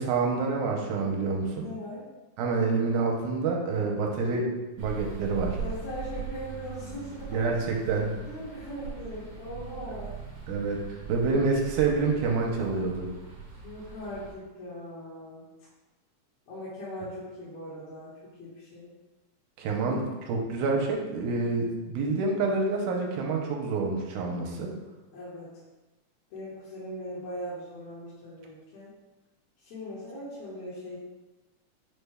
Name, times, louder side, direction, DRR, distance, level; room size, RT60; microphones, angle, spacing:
voice 1, 0.0-1.7 2.4-4.5 4.8-5.6 7.3-8.1 10.5-13.1 19.6-24.7, right 4 dB, 85° right, 0 dB, 2.0 m, -27 dB
voice 2, 1.5-2.1 5.6-7.5 8.2-10.1 13.6-15.5 16.5-18.9 25.1-25.6 26.3-28.9 29.6-31.0, equal, 65° left, -10 dB, 2.1 m, -40 dB
sound 1, 4.8-14.4, right 5 dB, 65° right, 1.7 m, -40 dB
6.3 x 2.2 x 3.4 m, 1.1 s
omnidirectional pair, 3.6 m